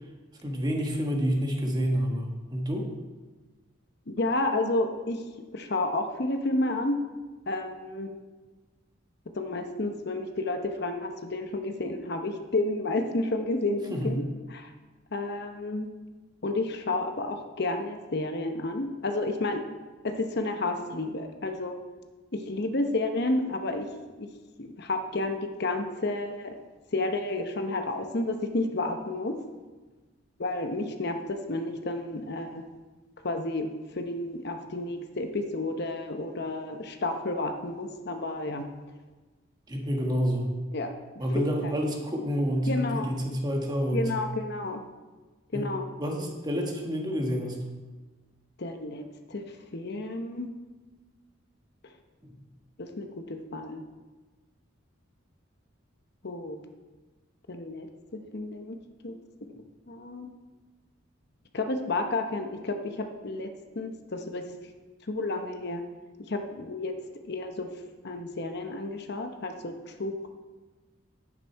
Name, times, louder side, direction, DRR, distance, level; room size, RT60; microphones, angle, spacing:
voice 1, 0.4-2.9 13.9-14.1 39.7-40.5 41.2-44.1 45.5-45.7 46.0-47.6 52.2-52.3, equal, 20° right, 1 dB, 1.5 m, -28 dB
voice 2, 4.1-5.3 5.5-7.0 7.5-8.1 9.3-14.2 14.5-14.7 15.1-15.9 16.4-19.6 20.0-21.8 22.3-23.9 24.2-24.3 24.6-26.6 26.9-29.3 30.4-32.6 33.2-33.7 33.9-38.7 40.7-40.9 41.3-41.7 42.7-43.1 43.9-44.8 45.5-45.8 48.6-50.5 52.8-53.8 56.2-56.6 57.5-58.8 59.0-59.1 59.9-60.3 61.5-64.4 65.0-65.9 66.3-66.9 67.2-67.7 68.0-70.1, left 2 dB, 55° left, 6 dB, 0.9 m, -31 dB
10.0 x 9.1 x 4.6 m, 1.3 s
head